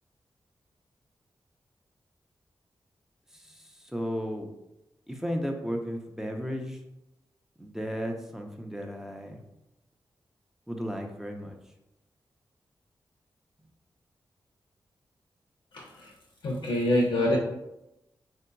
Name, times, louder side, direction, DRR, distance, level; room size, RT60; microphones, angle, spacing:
voice 1, 3.3-4.5 5.1-6.8 7.6-9.4 10.7-11.6, equal, 5° right, 2 dB, 0.5 m, -34 dB
voice 2, 15.7-16.1 16.4-17.4, left 1 dB, 80° left, -2 dB, 0.6 m, -26 dB
3.6 x 2.7 x 2.2 m, 0.92 s
cardioid pair, 55°, 8 cm